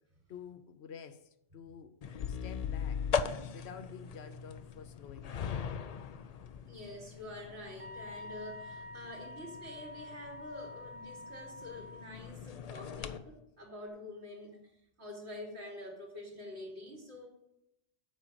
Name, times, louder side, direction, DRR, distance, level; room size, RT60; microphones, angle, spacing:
voice 1, 0.3-2.0 2.3-3.1 3.5-5.7, left 7 dB, 80° left, 1.0 m, -50 dB
sound 1, 2.0-13.2, left 7 dB, 50° left, 0.5 m, -40 dB
voice 2, 6.6-14.6 15.0-17.3, left 1 dB, 85° right, 2.5 m, -47 dB
Wind instrument woodwind instrument, 7.8-12.2, left 1 dB, 20° right, 0.4 m, -48 dB
7.8 x 5.1 x 6.7 m
omnidirectional pair, 1.1 m